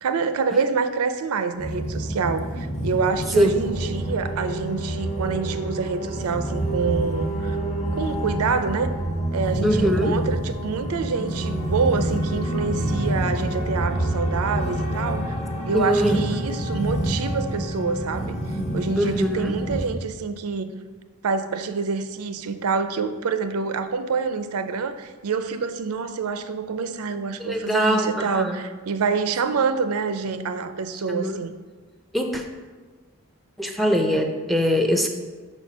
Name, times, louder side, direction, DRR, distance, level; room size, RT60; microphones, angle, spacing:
voice 1, 0.0-7.6 7.9-8.9 9.3-15.3 15.6-18.4 18.7-20.7 21.2-31.5, right 5 dB, 85° right, 10 dB, 0.5 m, -26 dB
sound 1, 1.6-19.9, right 1 dB, 30° left, 0.9 m, -27 dB
voice 2, 9.6-10.2 15.7-16.2 19.0-19.5 27.4-28.6 31.1-31.4 32.1-32.4 33.6-35.1, equal, ahead, 4 dB, 0.5 m, -22 dB
5.6 x 4.4 x 6.0 m, 1.4 s
head